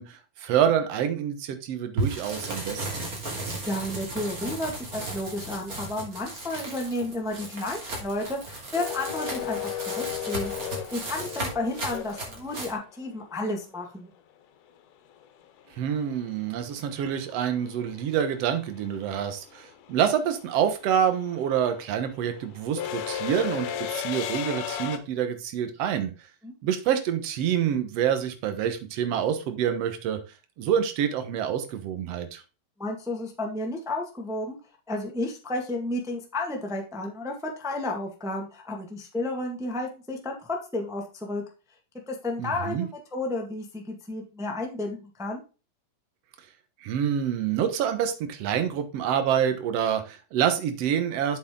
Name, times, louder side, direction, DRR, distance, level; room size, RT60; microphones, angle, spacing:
voice 1, 0.0-3.1 15.8-26.1 26.6-30.2 30.6-32.4 42.4-42.9 46.8-51.4, right 9 dB, 60° right, 9 dB, 1.9 m, -27 dB
sound 1, 2.0-12.7, right 2 dB, 25° right, 3.0 m, -35 dB
voice 2, 3.6-9.6 10.0-14.1 26.4-26.5 32.8-34.6 34.9-41.4 42.1-45.4, left 2 dB, 5° right, 1 dB, 0.5 m, -32 dB
sound 2, 8.8-12.8 15.2-15.3 16.6-16.9 17.2-25.0, left 10 dB, 75° left, 2.4 m, -34 dB
7.9 x 6.8 x 3.8 m, 0.32 s
omnidirectional pair, 3.7 m